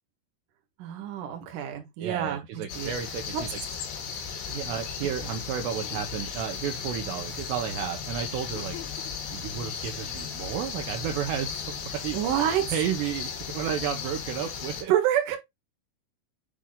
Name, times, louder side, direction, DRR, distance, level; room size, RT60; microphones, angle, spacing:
voice 1, 0.8-2.9 3.3-3.4 5.2-5.4 12.1-12.7 14.9-15.4, right 11 dB, 60° right, 2.4 m, -27 dB
voice 2, 2.0-3.5 4.5-8.8 9.3-14.9, right 9 dB, 75° right, 2.7 m, -32 dB
sound 1, 2.7-14.8, left 6 dB, 70° left, 4.0 m, -36 dB
sound 2, 5.6-6.3 8.5-9.4, left 12 dB, 85° left, 2.2 m, -45 dB
8.5 x 3.3 x 3.7 m
omnidirectional pair, 5.4 m